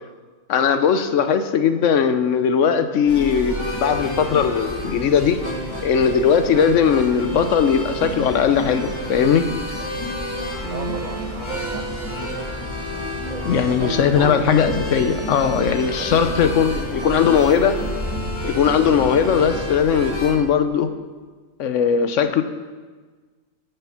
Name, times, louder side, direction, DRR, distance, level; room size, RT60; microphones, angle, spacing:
voice 1, 0.5-5.4 5.8-9.5 13.5-17.8 18.4-20.9 21.6-22.4, left 7 dB, 70° left, 10 dB, 1.0 m, -19 dB
sound 1, 3.1-20.3, equal, 20° left, 2.2 m, -29 dB
voice 2, 10.7-12.6 13.3-14.8 15.8-17.6, right 3 dB, 85° right, 4 dB, 1.6 m, -34 dB
12.0 x 6.8 x 5.7 m, 1.4 s
omnidirectional pair, 1.4 m